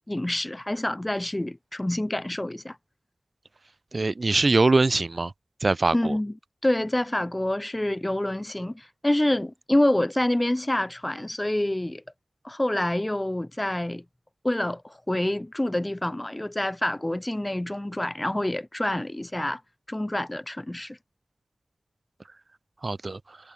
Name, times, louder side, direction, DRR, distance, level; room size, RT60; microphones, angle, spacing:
voice 1, 0.1-2.8 5.9-6.3 6.6-12.0 12.4-14.0 14.4-19.6 19.9-21.0, left 1 dB, 20° left, 1.3 m, -27 dB
voice 2, 3.9-5.3 5.6-6.2 22.8-23.4, right 3 dB, 50° right, 2.1 m, -23 dB
wide cardioid pair, 65°, 0 cm